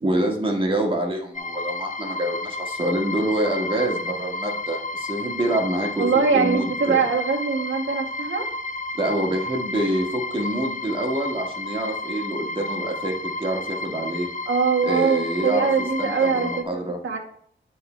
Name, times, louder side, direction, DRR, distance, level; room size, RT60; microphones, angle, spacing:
voice 1, 0.0-6.1 6.3-7.0 8.9-14.3 14.8-15.7 16.0-17.0, right 1 dB, 25° right, 1 dB, 1.6 m, -26 dB
sound 1, 1.3-16.6, left 2 dB, 40° left, 0.6 m, -31 dB
voice 2, 6.0-8.5 14.5-17.2, right 5 dB, 75° right, 0 dB, 1.3 m, -22 dB
11.0 x 3.9 x 4.4 m, 0.62 s
wide cardioid pair, 130°, 20 cm